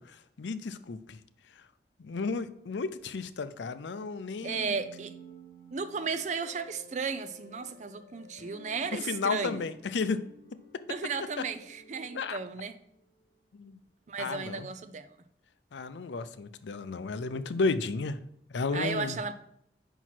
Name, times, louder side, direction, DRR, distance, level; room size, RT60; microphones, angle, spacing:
voice 1, 0.1-1.2 2.0-4.7 9.0-10.3 12.1-12.4 13.5-13.8 14.2-14.7 15.7-18.2 18.5-19.2, left 4 dB, 85° left, 0.5 m, -33 dB
sound 1, 4.4-13.3, equal, 35° left, 1.6 m, -53 dB
voice 2, 4.4-5.1 5.7-9.6 10.9-12.8 14.1-15.1 18.7-19.3, right 5 dB, 40° right, 0.5 m, -34 dB
5.5 x 4.6 x 5.8 m
head